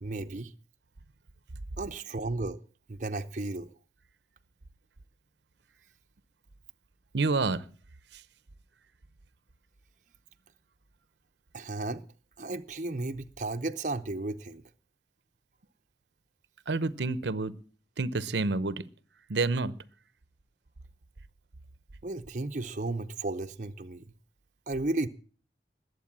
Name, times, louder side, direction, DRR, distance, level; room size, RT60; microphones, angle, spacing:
voice 1, 0.0-0.5 1.8-2.6 2.9-3.7 11.5-12.0 12.4-14.6 22.0-24.0 24.7-25.1, right 2 dB, 45° right, 0.7 m, -34 dB
voice 2, 7.1-7.7 8.1-8.2 16.7-17.5 18.0-18.9 19.3-19.8, right 3 dB, 80° right, 0.8 m, -28 dB
20.5 x 8.1 x 7.4 m
head